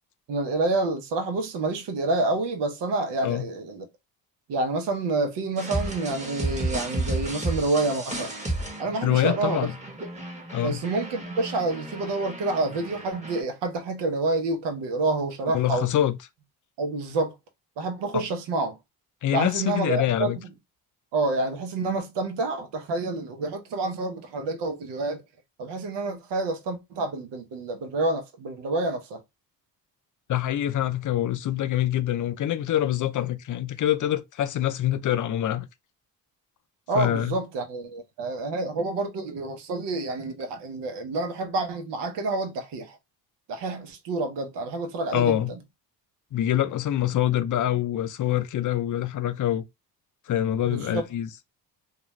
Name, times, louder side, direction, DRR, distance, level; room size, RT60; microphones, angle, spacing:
voice 1, 0.3-3.9 4.5-8.3 8.8-9.7 10.6-15.9 16.8-17.4 17.8-18.8 19.3-20.3 21.1-25.2 25.6-29.2 36.9-43.0 43.5-45.4 50.7-51.0, right 2 dB, 75° right, 0.8 m, -28 dB
sound 1, 5.6-13.4, right 1 dB, 15° right, 1.1 m, -33 dB
voice 2, 9.0-9.7 10.5-10.8 15.5-16.2 18.1-18.2 19.2-20.4 30.3-35.7 36.9-37.4 45.1-45.5 46.3-49.6 50.3-51.3, left 12 dB, 50° left, 0.5 m, -25 dB
2.4 x 2.2 x 3.0 m
supercardioid pair, 60°, 42 cm